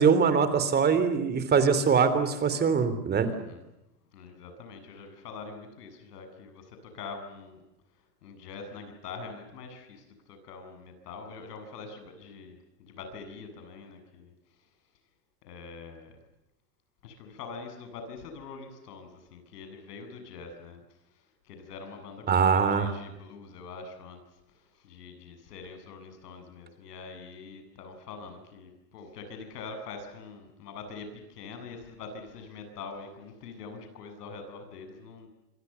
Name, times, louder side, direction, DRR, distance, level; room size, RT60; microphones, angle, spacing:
voice 1, 0.0-3.3 22.3-22.9, right 6 dB, 20° right, 11 dB, 3.4 m, -23 dB
voice 2, 3.2-3.6 4.1-7.6 8.2-14.3 15.4-16.1 17.0-20.8 21.4-24.2 24.8-35.3, left 4 dB, 75° left, 7 dB, 7.9 m, -44 dB
27.0 x 25.0 x 7.1 m, 0.91 s
supercardioid pair, 140°, 47 cm